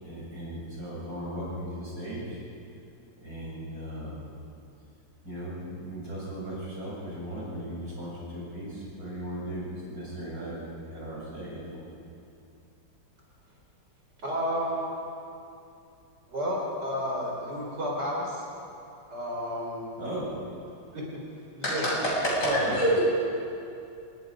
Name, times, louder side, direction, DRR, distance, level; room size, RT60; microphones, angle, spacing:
voice 1, 0.0-2.4 3.2-4.2 5.2-11.9 20.0-20.4 22.4-22.9, right 1 dB, 45° right, -7 dB, 7.9 m, -37 dB
voice 2, 14.2-14.9 16.3-18.4 19.1-20.0 20.9-21.2 21.5-21.9 22.4-22.7, equal, 60° right, -3 dB, 4.7 m, -31 dB
voice 3, 21.6-23.0, equal, 60° left, -6 dB, 7.6 m, -26 dB
27.0 x 19.5 x 5.1 m, 2.6 s
omnidirectional pair, 2.1 m